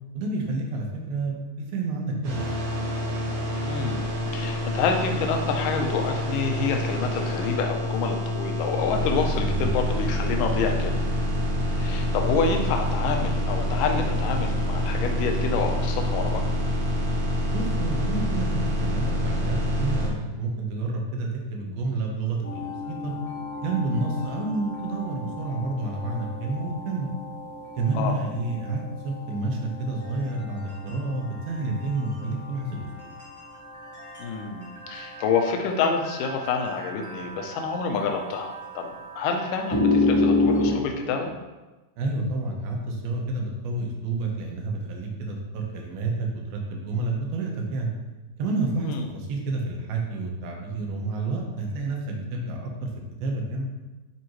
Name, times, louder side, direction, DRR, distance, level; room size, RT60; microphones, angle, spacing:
voice 1, 0.1-2.5 9.4-9.7 17.5-23.1 23.6-27.1 27.8-33.1 42.0-47.9 48.4-52.9 53.2-53.7, right 3 dB, 80° right, 0 dB, 2.9 m, -29 dB
sound 1, 2.2-20.1, left 1 dB, 50° right, 1.9 m, -27 dB
voice 2, 3.6-4.0 4.3-10.9 11.8-16.4 27.9-28.2 34.2-41.3 48.8-49.1, left 5 dB, 75° left, 3 dB, 2.2 m, -28 dB
sound 2, 22.4-40.7, left 2 dB, 20° left, 0.5 m, -31 dB
9.9 x 4.6 x 3.0 m, 1.1 s
omnidirectional pair, 4.2 m